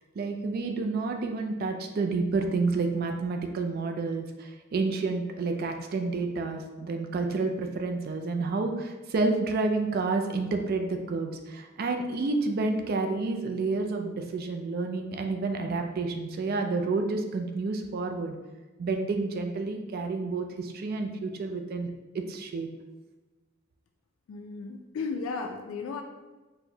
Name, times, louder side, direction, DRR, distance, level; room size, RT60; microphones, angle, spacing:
voice 1, 0.2-18.4 18.8-21.9 22.1-22.7, right 3 dB, 45° right, 4 dB, 0.3 m, -29 dB
voice 2, 24.3-26.0, left 4 dB, 75° left, 3 dB, 0.3 m, -34 dB
4.4 x 2.1 x 2.7 m, 1.2 s
head